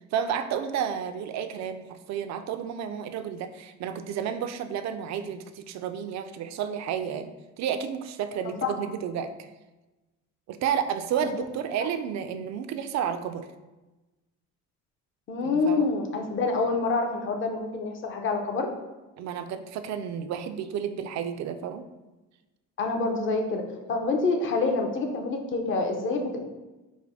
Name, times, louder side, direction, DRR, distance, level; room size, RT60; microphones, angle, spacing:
voice 1, 0.1-7.3 7.6-9.5 10.5-13.5 15.4-15.9 19.2-21.9, right 8 dB, 60° right, 9 dB, 0.5 m, -31 dB
voice 2, 15.3-18.7 22.8-23.6 23.9-26.4, left 3 dB, 40° left, 3 dB, 0.7 m, -27 dB
5.1 x 2.1 x 4.9 m, 1.1 s
cardioid pair, 125°, 31 cm